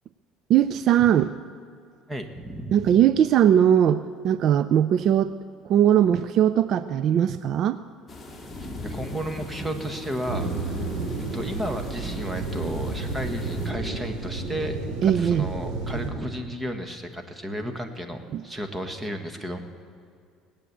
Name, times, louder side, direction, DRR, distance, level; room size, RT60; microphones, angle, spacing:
voice 1, 0.5-1.3 2.7-5.3 5.7-7.8 15.0-15.5 18.3-18.4, right 10 dB, 55° right, 14 dB, 0.4 m, -20 dB
voice 2, 2.1-3.0 8.6-10.8 11.3-14.8 15.0-19.6, equal, 15° right, 6 dB, 1.5 m, -33 dB
sound 1, 8.1-13.7, left 2 dB, 15° left, 2.3 m, -39 dB
sound 2, 10.3-16.1, right 3 dB, 70° right, 3.1 m, -31 dB
19.5 x 8.9 x 8.3 m, 2.3 s
cardioid pair, 120°, 0 cm